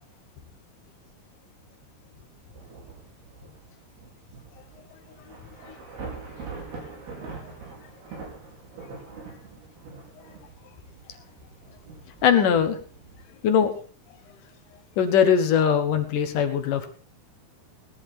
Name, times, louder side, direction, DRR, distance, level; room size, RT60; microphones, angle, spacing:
Thunder / Rain, 2.3-13.2, right 4 dB, 70° right, 6.9 m, -43 dB
voice 1, 4.5-8.3 8.8-8.9 9.3-9.4 10.1-10.8 11.0-11.3 11.7-11.9 13.2-13.5 14.2-14.8, left 9 dB, 80° left, 8 dB, 3.5 m, -57 dB
voice 2, 12.2-12.8 13.4-13.7 15.0-16.9, left 8 dB, 65° left, 7 dB, 2.8 m, -21 dB
18.0 x 11.0 x 4.4 m, 0.37 s
omnidirectional pair, 4.6 m